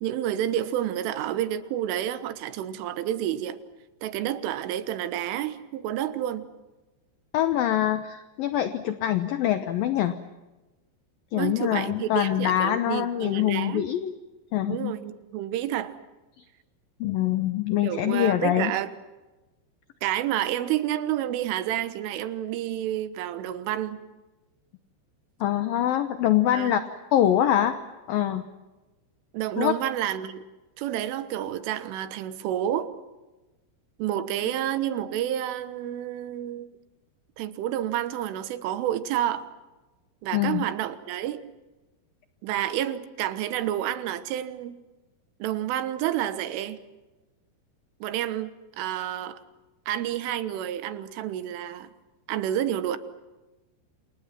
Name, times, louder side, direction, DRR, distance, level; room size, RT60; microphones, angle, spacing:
voice 1, 0.0-3.6 4.0-6.5 11.3-13.9 14.6-16.0 17.8-18.9 20.0-24.0 26.5-26.9 29.3-30.4 30.8-32.9 34.0-36.7 37.4-39.5 40.2-41.4 42.4-44.8 45.4-46.8 48.0-49.4 49.9-51.9 52.3-53.0, right 11 dB, 85° right, 3.8 m, -29 dB
voice 2, 7.3-10.1 11.3-14.1 14.5-14.9 17.0-18.7 25.4-26.8 27.1-27.8 28.1-28.4 29.6-29.7 40.3-40.7, left 11 dB, 80° left, 2.0 m, -24 dB
29.0 x 28.5 x 6.0 m
omnidirectional pair, 5.6 m